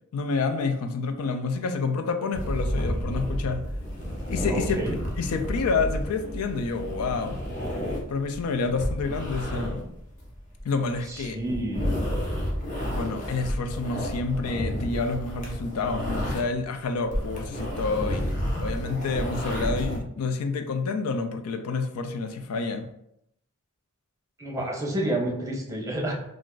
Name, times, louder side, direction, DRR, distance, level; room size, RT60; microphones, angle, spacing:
voice 1, 0.1-3.7 4.3-7.4 8.1-9.8 10.6-11.4 12.9-18.3 18.6-22.9 24.6-24.7, left 4 dB, 85° left, 7 dB, 0.4 m, -28 dB
sound 1, 2.3-16.6 16.9-20.0, equal, 35° left, 0.7 m, -31 dB
voice 2, 4.5-5.0 11.1-12.1 24.4-26.1, right 1 dB, 15° right, -1 dB, 0.6 m, -30 dB
2.5 x 2.4 x 3.7 m, 0.78 s
head